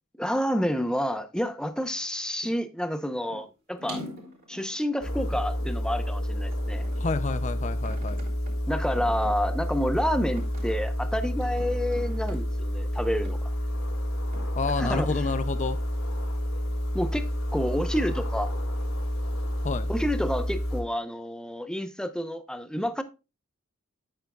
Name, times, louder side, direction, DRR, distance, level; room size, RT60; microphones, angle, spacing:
voice 1, 0.2-4.0 4.5-6.9 8.7-13.5 14.8-15.1 16.9-18.5 19.9-23.0, equal, 5° left, 0.8 m, -29 dB
sound 1, 3.3-3.5 3.8-5.7 6.4-7.2 7.9-8.5 8.9-9.3 9.9-10.0 10.4-10.8 11.4-12.4 13.2-13.3 14.3-14.4, equal, 45° right, 4.0 m, -43 dB
sound 2, 5.0-20.8, equal, 70° left, 3.7 m, -29 dB
voice 2, 7.0-8.2 14.6-15.8 19.6-19.9, left 4 dB, 35° left, 0.5 m, -29 dB
9.4 x 9.0 x 2.3 m
head